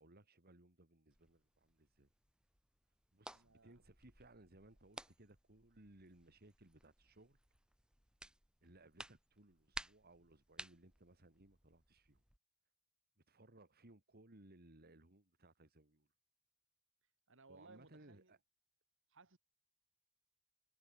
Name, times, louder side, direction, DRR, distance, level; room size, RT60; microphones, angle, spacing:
voice 1, 0.0-2.1 3.1-7.4 8.6-12.2 13.3-16.1 17.5-18.4, right 1 dB, 45° right, 2.8 m, -64 dB
sound 1, 1.1-12.4, right 1 dB, 5° right, 2.3 m, -57 dB
voice 2, 3.3-3.8 17.3-18.3 19.1-19.4, right 3 dB, 65° right, 2.8 m, -63 dB
head